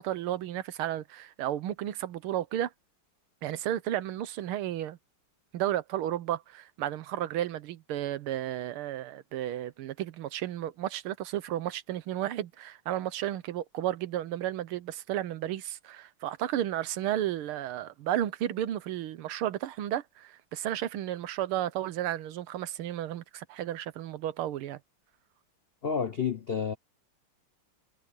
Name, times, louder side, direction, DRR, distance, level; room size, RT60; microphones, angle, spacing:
voice 1, 0.0-2.7 3.4-5.0 5.5-24.8, right 12 dB, 90° right, 1.7 m, -33 dB
voice 2, 25.8-26.7, left 6 dB, 75° left, 0.5 m, -30 dB
omnidirectional pair, 2.3 m